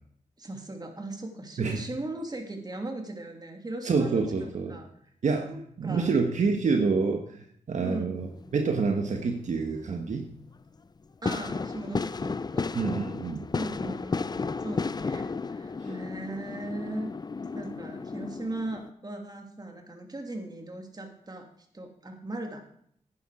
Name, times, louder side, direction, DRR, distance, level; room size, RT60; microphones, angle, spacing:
voice 1, 0.4-4.9 5.5-6.2 7.8-8.1 11.2-12.7 13.5-17.1 17.5-22.6, right 2 dB, 30° right, 3 dB, 2.8 m, -38 dB
voice 2, 3.8-4.7 5.2-5.5 5.8-7.2 7.7-8.3 8.5-10.3 12.7-13.5, right 4 dB, 70° right, 4 dB, 1.4 m, -27 dB
sound 1, 8.2-8.8 9.2-9.9 10.5-10.6 11.2-18.9, left 4 dB, 30° left, 0.5 m, -33 dB
10.5 x 10.0 x 5.0 m, 0.66 s
cardioid pair, 70°, 13 cm